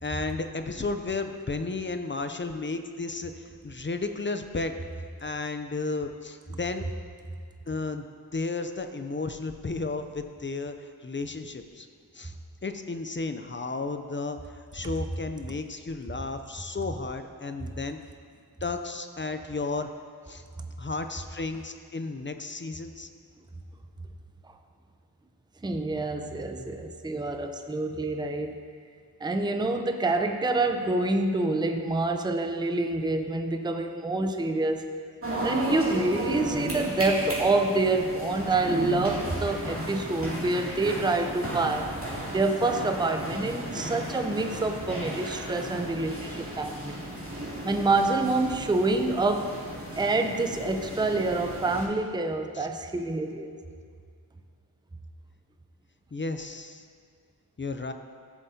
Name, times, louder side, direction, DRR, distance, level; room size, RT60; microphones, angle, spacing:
voice 1, 0.0-4.7 5.2-6.9 7.7-8.0 8.3-11.9 12.1-12.3 12.6-18.0 18.6-19.9 20.3-20.4 20.8-23.1 52.5-52.7 56.1-56.9 57.6-57.9, left 3 dB, 30° left, 8 dB, 0.5 m, -33 dB
voice 2, 25.6-28.6 29.2-34.9 35.4-41.9 42.3-47.0 47.6-49.6 50.0-53.5, right 2 dB, 10° right, 6 dB, 0.6 m, -27 dB
sound 1, 35.2-51.9, right 1 dB, 35° right, 2.6 m, -35 dB
13.5 x 7.3 x 2.8 m, 2.1 s
cardioid pair, 50°, 40 cm